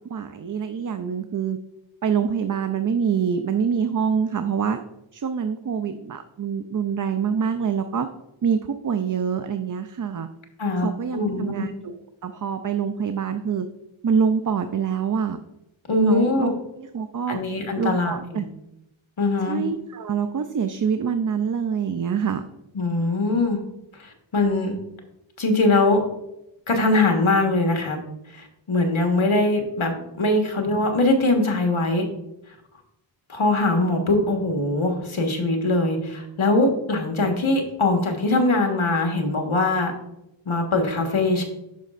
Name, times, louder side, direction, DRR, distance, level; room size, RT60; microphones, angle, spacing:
voice 1, 0.1-1.6 2.0-4.8 5.1-8.1 8.4-10.3 10.8-11.9 12.2-13.7 14.0-15.4 16.0-16.5 16.8-17.4 17.8-18.5 19.5-22.4, right 7 dB, 40° right, 9 dB, 0.5 m, -25 dB
voice 2, 10.6-11.7 15.9-16.5 17.3-18.4 19.2-19.6 22.7-23.6 24.0-24.8 25.4-26.0 26.7-28.0 28.3-32.1 33.3-39.9 40.4-41.5, left 2 dB, 75° left, 2 dB, 1.5 m, -22 dB
9.3 x 6.4 x 2.5 m, 0.87 s
wide cardioid pair, 45°, 49 cm